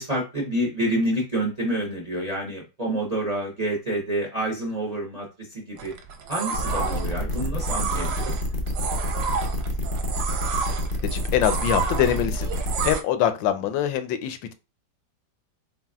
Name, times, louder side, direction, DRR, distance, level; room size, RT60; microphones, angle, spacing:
voice 1, 0.0-5.9 6.3-8.3, right 1 dB, 35° right, 0.7 m, -28 dB
sound 1, 5.8-13.0, right 6 dB, 70° right, 1.1 m, -31 dB
sound 2, 6.5-12.9, left 1 dB, 60° left, 0.5 m, -28 dB
voice 2, 11.1-14.5, left 10 dB, 85° left, 1.3 m, -24 dB
4.1 x 4.0 x 2.3 m
omnidirectional pair, 2.0 m